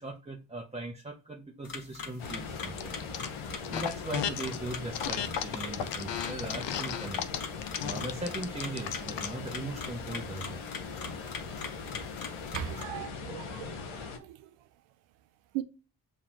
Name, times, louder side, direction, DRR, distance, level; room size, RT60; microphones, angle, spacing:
voice 1, 0.0-3.0 3.7-7.2 7.8-10.6, right 2 dB, 15° right, 0.7 m, -39 dB
sound 1, 1.6-12.9, left 5 dB, 45° left, 1.2 m, -42 dB
sound 2, 2.2-14.2, left 5 dB, 80° left, 1.0 m, -40 dB
sound 3, 2.8-3.3 3.6-4.6 4.9-9.3, left 9 dB, 65° left, 0.7 m, -34 dB
voice 2, 12.5-14.4 15.5-15.6, right 13 dB, 80° right, 0.6 m, -38 dB
7.1 x 2.4 x 2.9 m
hypercardioid pair, 45°, 47 cm